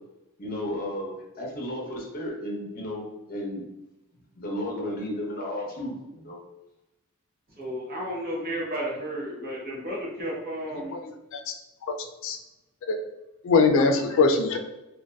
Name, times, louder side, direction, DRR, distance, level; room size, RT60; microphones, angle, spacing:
voice 1, 0.4-3.6 4.4-6.4, left 1 dB, 45° left, -2 dB, 0.7 m, -33 dB
voice 2, 7.6-10.9, equal, 45° right, -4 dB, 0.9 m, -32 dB
voice 3, 13.4-14.6, left 4 dB, 60° left, 5 dB, 0.3 m, -21 dB
2.6 x 2.2 x 2.2 m, 0.95 s
head